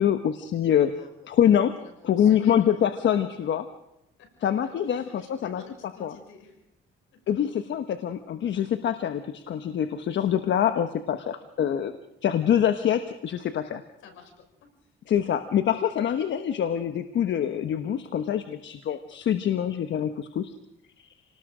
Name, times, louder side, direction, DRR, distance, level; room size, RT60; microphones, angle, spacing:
voice 1, 0.0-0.9 1.3-1.7 2.1-3.7 4.4-5.6 6.0-6.1 7.3-11.9 12.2-13.8 15.1-20.5 21.0-21.1, left 9 dB, 65° left, 8 dB, 1.2 m, -25 dB
voice 2, 0.9-1.4 1.8-2.8 4.2-4.5 4.8-6.6 7.1-7.2 10.2-10.3 11.4-11.5 14.0-14.9 15.2-15.3, left 5 dB, 85° left, 4 dB, 5.9 m, -51 dB
28.5 x 19.5 x 5.0 m, 0.87 s
cardioid pair, 90°, 20 cm